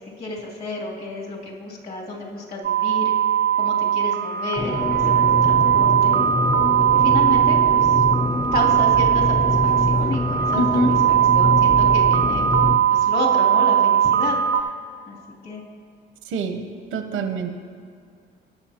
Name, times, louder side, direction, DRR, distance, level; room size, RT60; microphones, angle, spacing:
voice 1, 0.2-3.1 3.6-6.3 6.9-8.0 8.5-10.6 11.3-12.5 12.9-14.4 15.1-15.2 15.4-15.6, left 2 dB, 50° left, -4 dB, 2.8 m, -31 dB
sound 1, 2.6-14.6, right 9 dB, 55° right, 0.4 m, -19 dB
sound 2, 4.6-12.8, left 2 dB, 20° left, 0.6 m, -25 dB
voice 2, 10.6-11.0 16.2-16.6 16.9-17.5, right 2 dB, 90° right, 7 dB, 0.8 m, -24 dB
19.0 x 7.0 x 2.9 m, 2.2 s
cardioid pair, 90°, 20 cm